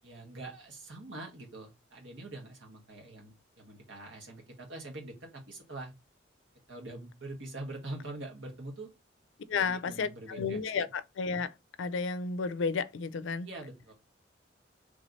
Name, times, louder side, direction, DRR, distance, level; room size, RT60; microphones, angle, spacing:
voice 1, 0.0-5.9 6.7-8.9 9.5-10.9 13.4-13.9, right 2 dB, 80° right, 1.7 m, -44 dB
voice 2, 9.5-13.5, left 5 dB, 80° left, 0.4 m, -32 dB
3.4 x 3.1 x 3.9 m
head